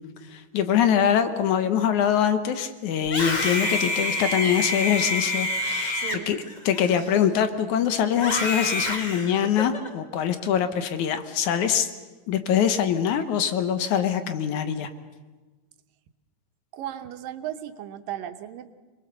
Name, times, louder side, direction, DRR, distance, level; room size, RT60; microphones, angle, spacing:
voice 1, 0.3-6.0 6.3-11.9 12.3-14.9, left 9 dB, 70° left, 9 dB, 2.3 m, -24 dB
Screaming, 3.0-7.5 8.1-9.9, left 2 dB, 50° left, 0.5 m, -28 dB
voice 2, 5.9-6.4 16.7-18.7, right 11 dB, 85° right, 8 dB, 2.8 m, -36 dB
27.0 x 21.0 x 6.8 m, 1.3 s
omnidirectional pair, 3.8 m